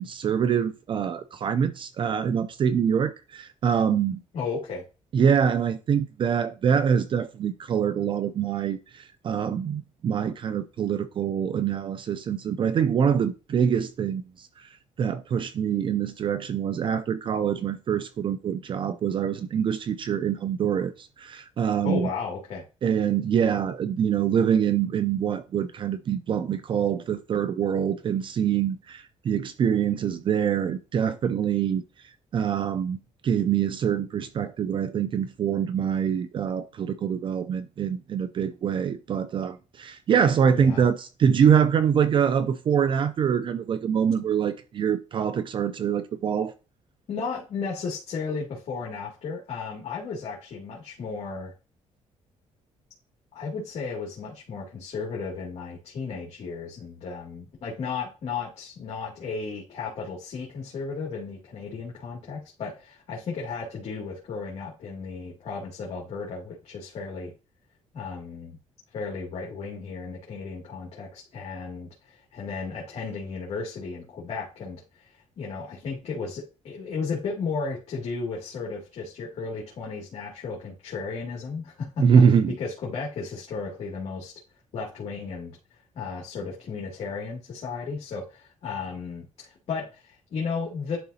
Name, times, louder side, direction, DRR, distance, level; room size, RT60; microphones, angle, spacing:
voice 1, 0.0-4.2 5.1-14.7 15.0-22.1 22.8-31.8 32.3-33.0 33.2-46.5 82.0-82.5, right 7 dB, 45° right, 0.4 m, -24 dB
voice 2, 4.3-4.8 21.8-22.6 40.5-40.8 47.1-51.5 53.3-67.3 67.9-68.6 68.9-84.4 84.7-85.6 85.9-91.0, left 5 dB, 60° left, 2.4 m, -34 dB
11.0 x 3.8 x 2.8 m
cardioid pair, 125°, 12 cm